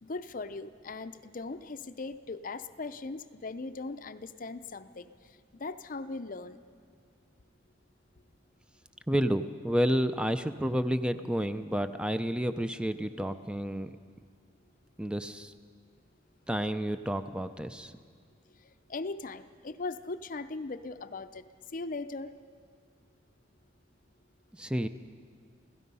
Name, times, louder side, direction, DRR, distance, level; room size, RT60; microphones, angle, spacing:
voice 1, 0.0-5.1 5.6-6.6 18.9-21.4 21.7-22.3, left 3 dB, 45° left, 12 dB, 0.6 m, -39 dB
voice 2, 9.1-13.9 15.0-15.5 16.5-17.9 24.5-24.9, equal, 5° right, 10 dB, 0.5 m, -30 dB
29.0 x 16.5 x 5.5 m, 2.1 s
head